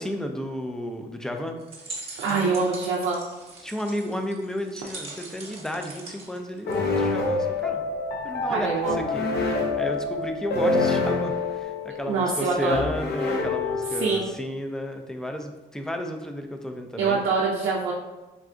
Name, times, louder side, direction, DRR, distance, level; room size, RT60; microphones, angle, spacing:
voice 1, 0.0-1.6 2.3-2.7 3.6-7.9 8.2-17.2, left 1 dB, 5° left, 4 dB, 0.3 m, -33 dB
sound 1, 1.6-7.2, right 2 dB, 30° right, 0.9 m, -42 dB
voice 2, 2.2-3.2 8.5-9.0 12.1-12.7 14.0-14.3 17.0-17.9, right 4 dB, 85° right, -4 dB, 0.4 m, -24 dB
sound 2, 6.7-14.3, left 3 dB, 55° left, 0.6 m, -27 dB
3.6 x 2.2 x 2.5 m, 1.1 s
cardioid pair, 90°, 20 cm